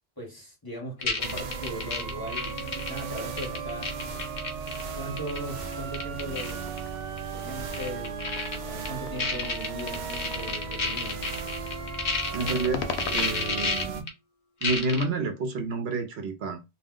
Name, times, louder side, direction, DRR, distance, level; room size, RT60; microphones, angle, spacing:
voice 1, 0.2-4.2 4.9-6.7 7.3-8.2 8.5-11.3, equal, 20° left, 1.0 m, -39 dB
sound 1, 1.0-4.8 5.2-5.4 5.7-6.5 6.8-6.9 7.2-7.3 7.7-8.6 8.9-9.0 9.2-12.7 12.9-14.1 14.6-15.0, left 4 dB, 45° left, 0.7 m, -30 dB
sound 2, 1.2-14.0, right 5 dB, 55° right, 0.5 m, -36 dB
sound 3, 6.6-10.9 12.2-13.3, left 6 dB, 75° left, 0.8 m, -39 dB
voice 2, 12.3-14.1 14.6-16.6, right 3 dB, 70° right, 0.9 m, -29 dB
2.3 x 2.1 x 3.6 m
omnidirectional pair, 1.1 m